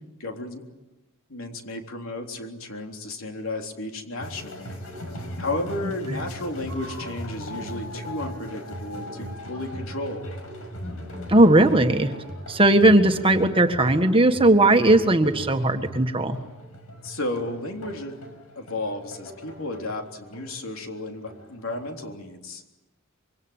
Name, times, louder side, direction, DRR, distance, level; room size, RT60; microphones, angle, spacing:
voice 1, 0.2-0.6 1.3-4.8 5.1-10.3 17.0-18.2 18.6-22.6, left 2 dB, 70° left, 3 dB, 3.6 m, -33 dB
sound 1, 4.2-22.0, equal, 85° left, 5.8 m, -38 dB
voice 2, 11.3-12.1 12.5-16.4, right 1 dB, 25° right, 6 dB, 1.6 m, -18 dB
25.5 x 24.0 x 8.9 m, 1.0 s
head